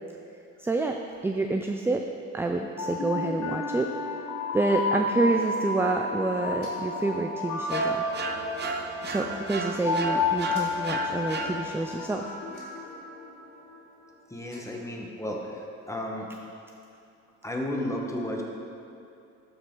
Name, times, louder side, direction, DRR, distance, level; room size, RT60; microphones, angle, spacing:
voice 1, 0.6-2.0 2.3-3.9 4.5-8.1 9.0-12.3, right 2 dB, 10° right, 3 dB, 0.3 m, -28 dB
sound 1, 2.6-13.7, left 3 dB, 65° left, 1.4 m, -31 dB
sound 2, 6.6-7.0 8.6-8.8 10.5-10.7 12.5-13.0 14.3-14.8, left 3 dB, 85° left, 1.8 m, -49 dB
sound 3, 7.7-12.0, right 4 dB, 35° right, 0.7 m, -35 dB
voice 2, 14.3-16.3 17.4-18.4, left 1 dB, 10° left, -1 dB, 1.3 m, -33 dB
12.5 x 4.9 x 3.9 m, 2.7 s
cardioid pair, 90°, 30 cm